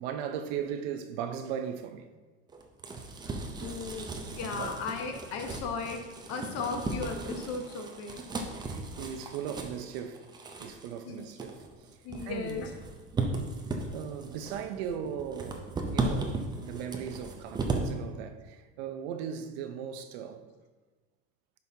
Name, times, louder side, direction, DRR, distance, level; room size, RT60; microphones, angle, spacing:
voice 1, 0.0-2.1 4.4-4.8 8.6-10.3 10.6-11.7 12.2-12.7 13.9-20.4, right 8 dB, 75° right, 0.7 m, -38 dB
sound 1, 2.5-17.9, right 3 dB, 15° right, 0.5 m, -36 dB
voice 2, 3.6-6.0 6.3-8.2 11.0-11.3 12.0-12.7, left 4 dB, 50° left, 1.0 m, -36 dB
10.5 x 5.4 x 2.8 m
cardioid pair, 150°, 32 cm